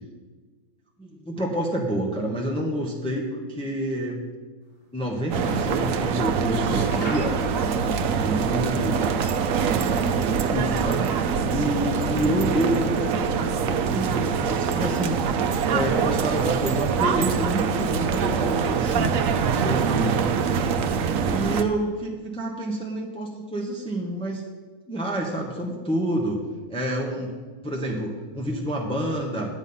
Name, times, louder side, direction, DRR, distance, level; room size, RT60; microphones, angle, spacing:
voice 1, 1.0-4.2 4.9-9.1 10.4-11.1 11.5-15.2 15.7-20.3 21.3-24.4 24.9-26.4 26.7-27.3 27.6-29.6, right 1 dB, 5° left, -1 dB, 1.2 m, -28 dB
sound 1, 4.7-5.9 6.2-6.3 6.6-7.9 8.2-9.1 9.5-10.4 11.0-12.0 12.5-13.2 13.5-14.2 14.9-15.0, left 1 dB, 40° left, 3.2 m, -39 dB
sound 2, 5.3-21.6, right 6 dB, 70° right, 1.1 m, -24 dB
11.5 x 8.3 x 5.6 m, 1.4 s
omnidirectional pair, 1.5 m